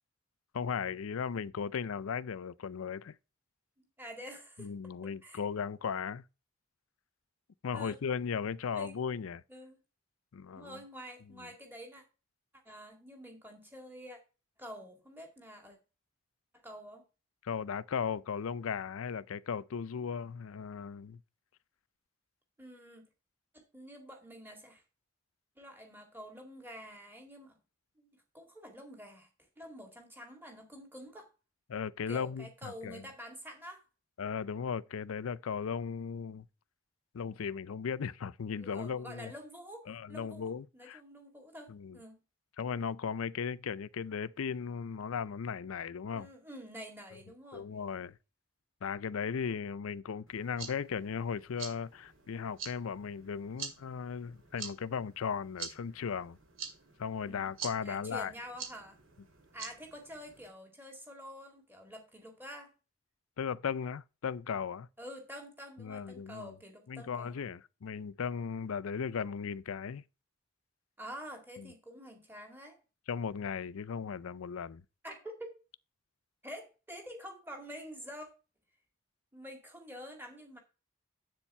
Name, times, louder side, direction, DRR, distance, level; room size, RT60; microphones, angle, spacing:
voice 1, 0.5-3.2 4.6-6.2 7.6-9.4 10.3-10.8 11.4-11.5 17.4-21.2 31.7-33.1 34.2-36.4 37.1-39.3 39.9-41.0 41.7-42.0 42.6-46.3 47.5-48.2 48.8-56.4 57.0-58.3 63.4-64.9 65.8-66.5 66.9-70.0 71.6-71.7 73.1-74.8, left 6 dB, 85° left, 0.5 m, -37 dB
voice 2, 3.8-4.7 5.2-5.4 7.7-8.0 8.7-9.0 9.5-9.8 10.5-12.0 12.7-14.2 14.6-15.8 16.6-17.0 22.6-23.1 23.5-24.8 25.6-27.6 28.0-29.3 29.6-31.3 32.1-33.8 38.5-42.2 46.1-47.6 57.2-57.5 57.8-59.0 59.5-62.7 65.0-67.4 71.0-72.8 75.0-75.6 76.4-78.3 79.3-80.6, equal, 10° right, 2.1 m, -48 dB
sound 1, 50.3-60.5, right 6 dB, 70° right, 2.3 m, -47 dB
7.8 x 7.2 x 4.3 m
head